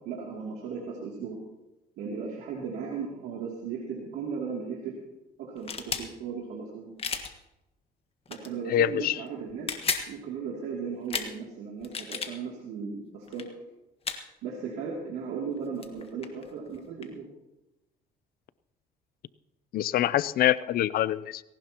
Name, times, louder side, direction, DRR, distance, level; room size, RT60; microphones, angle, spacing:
voice 1, 0.0-1.4 2.0-5.0 5.4-6.9 8.3-9.8 10.1-13.5 14.4-17.3, right 5 dB, 85° right, -3 dB, 2.7 m, -36 dB
sound 1, 5.6-6.1 7.0-7.3 8.3-8.5 9.5-10.1 11.1-11.3 11.8-12.3 13.3-13.4 14.0-14.2 15.6-15.7 15.8-17.1, left 5 dB, 35° left, 1.5 m, -33 dB
voice 2, 8.7-9.2 19.7-21.4, left 12 dB, 60° left, 18 dB, 0.5 m, -25 dB
19.0 x 18.0 x 2.9 m, 0.95 s
cardioid pair, 110°, 17 cm